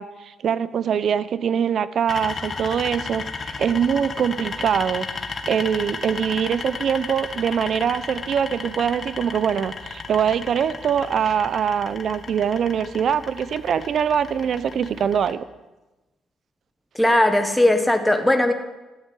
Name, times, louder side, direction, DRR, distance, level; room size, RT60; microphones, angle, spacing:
voice 1, 0.0-5.1 5.5-15.4, right 8 dB, 60° right, 16 dB, 0.8 m, -23 dB
sound 1, 2.1-15.3, left 4 dB, 40° left, 2.1 m, -34 dB
voice 2, 16.9-18.5, left 1 dB, 5° left, 6 dB, 1.4 m, -18 dB
14.0 x 12.0 x 8.5 m, 1.1 s
cardioid pair, 90°, 0 cm